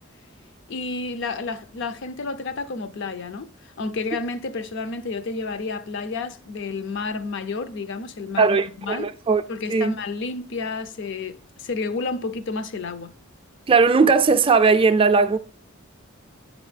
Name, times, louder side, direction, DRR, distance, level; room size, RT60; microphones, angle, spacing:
voice 1, 0.7-9.1 9.5-13.1, left 3 dB, 60° left, 0.5 m, -30 dB
voice 2, 8.4-9.4 9.7-10.0 13.7-15.4, right 4 dB, 25° right, 0.4 m, -18 dB
7.9 x 5.2 x 3.3 m
head